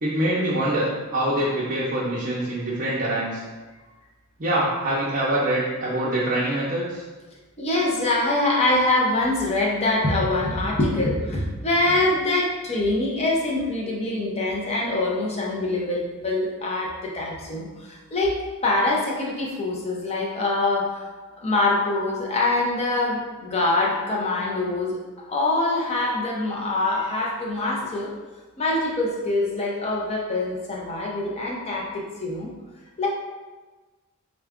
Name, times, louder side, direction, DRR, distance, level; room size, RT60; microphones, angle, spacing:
voice 1, 0.0-3.4 4.4-7.0, right 1 dB, 40° right, -7 dB, 0.6 m, -24 dB
voice 2, 7.6-18.4 18.6-21.0 21.4-25.0 25.3-28.1 28.6-32.5 33.0-33.1, left 2 dB, 30° left, -2 dB, 0.6 m, -24 dB
3.7 x 2.3 x 3.5 m, 1.3 s
head